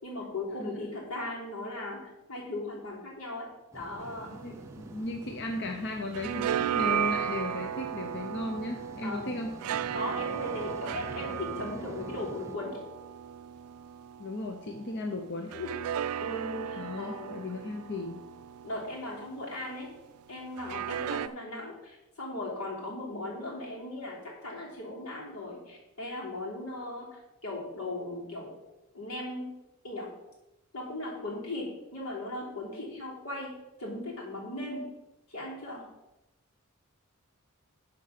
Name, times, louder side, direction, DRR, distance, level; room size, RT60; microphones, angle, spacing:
voice 1, 0.0-2.0 2.3-4.3 9.0-9.4 9.9-12.8 15.5-17.3 18.6-19.9 20.3-28.5 28.9-29.5 29.8-30.1 30.7-33.5 33.8-34.9 35.3-35.8, left 2 dB, 90° left, -4 dB, 3.3 m, -38 dB
sound 1, 3.7-12.6, right 1 dB, 15° right, 0.5 m, -47 dB
sound 2, 4.0-5.7 6.0-14.7 15.5-19.6 20.6-21.3, right 9 dB, 85° right, 0.3 m, -35 dB
voice 2, 4.4-9.5 14.2-15.5 16.8-18.2, left 2 dB, 50° left, 3 dB, 0.8 m, -36 dB
11.5 x 4.6 x 5.9 m, 0.96 s
head